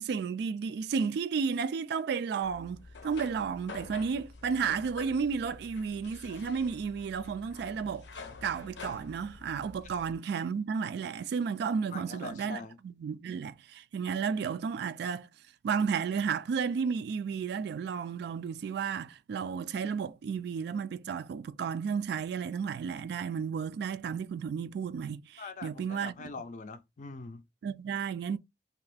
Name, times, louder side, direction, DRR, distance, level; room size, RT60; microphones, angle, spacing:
voice 1, 0.0-8.1 8.4-15.3 15.6-26.1 27.6-28.4, right 6 dB, 65° right, 0.3 m, -33 dB
sound 1, 2.4-10.2, left 4 dB, 90° left, 0.6 m, -48 dB
voice 2, 11.9-12.8 25.4-27.4, left 4 dB, 45° left, 0.4 m, -43 dB
2.6 x 2.4 x 3.3 m
head